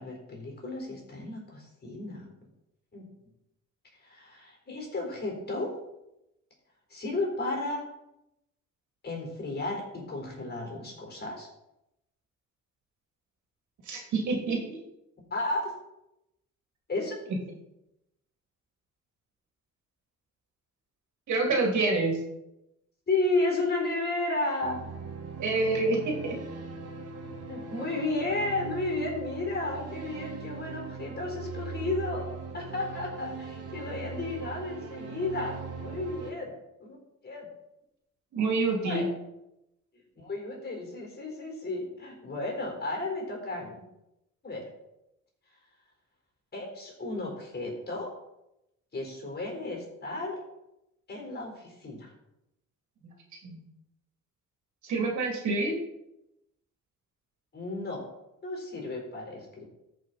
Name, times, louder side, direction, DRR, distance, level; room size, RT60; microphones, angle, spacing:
voice 1, 0.0-2.3 2.9-3.1 4.0-5.8 6.9-7.9 9.0-11.5 15.3-15.7 16.9-17.1 23.1-24.8 27.5-37.0 37.2-37.5 38.8-39.1 40.2-43.8 44.4-44.7 46.5-48.1 48.9-50.4 51.1-52.1 57.5-58.1 58.4-59.6, left 2 dB, 35° left, 0 dB, 4.3 m, -33 dB
voice 2, 13.9-14.8 21.3-22.2 25.4-26.3 38.3-39.1 53.4-53.6 54.8-55.7, right 3 dB, 70° right, 1 dB, 2.6 m, -27 dB
sound 1, 24.6-36.3, right 5 dB, 55° right, 1.7 m, -40 dB
14.0 x 5.6 x 4.1 m, 0.88 s
cardioid pair, 90°, 30 cm